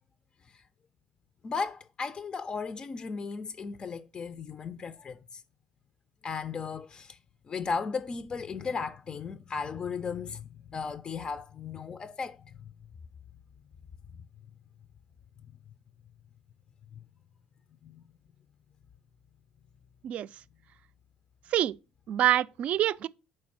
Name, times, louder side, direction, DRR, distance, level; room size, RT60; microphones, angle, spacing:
voice 1, 1.4-5.4 6.2-7.2 7.5-12.6 17.8-18.0, left 5 dB, 35° left, 0.4 m, -36 dB
voice 2, 22.1-23.1, right 12 dB, 55° right, 0.3 m, -26 dB
4.7 x 4.3 x 5.8 m
supercardioid pair, 85°, 3 cm